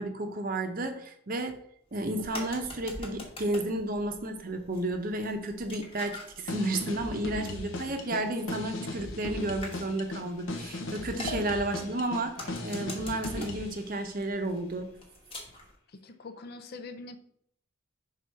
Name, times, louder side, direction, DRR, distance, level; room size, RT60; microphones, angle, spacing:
voice 1, 0.0-1.6 1.9-6.2 6.4-14.9, right 1 dB, 45° right, 5 dB, 0.7 m, -32 dB
sound 1, 1.9-15.7, left 2 dB, 25° left, 1.2 m, -46 dB
sound 2, 6.4-13.8, left 2 dB, 70° left, 0.8 m, -37 dB
voice 2, 15.9-17.2, left 3 dB, 50° left, 9 dB, 0.5 m, -44 dB
4.6 x 3.7 x 5.6 m, 0.67 s
head